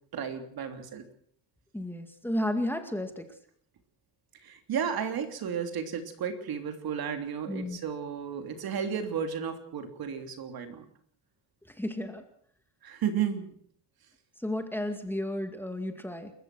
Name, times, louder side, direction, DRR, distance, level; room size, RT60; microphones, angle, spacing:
voice 1, 0.1-1.0 4.4-10.9 12.8-13.6, right 7 dB, 55° right, 7 dB, 3.2 m, -33 dB
voice 2, 1.7-3.2 7.5-7.8 11.8-12.2 14.4-16.3, left 1 dB, 5° left, 6 dB, 2.1 m, -32 dB
29.5 x 14.5 x 6.2 m, 0.62 s
cardioid pair, 130°, 43 cm